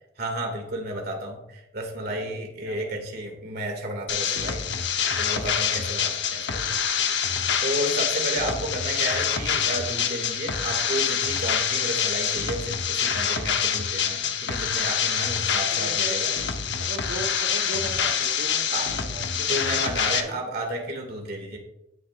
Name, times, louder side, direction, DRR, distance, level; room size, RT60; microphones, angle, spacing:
voice 1, 0.2-4.6 5.2-6.6 7.3-16.3 18.7-18.9 19.3-21.6, right 1 dB, 55° right, 2 dB, 2.2 m, -32 dB
voice 2, 2.0-3.1 8.5-8.6 15.7-16.2 16.6-20.4, right 2 dB, 75° right, 3 dB, 1.2 m, -39 dB
sound 1, 4.1-20.2, left 7 dB, 65° left, 0.9 m, -26 dB
17.5 x 6.5 x 2.5 m, 0.86 s
head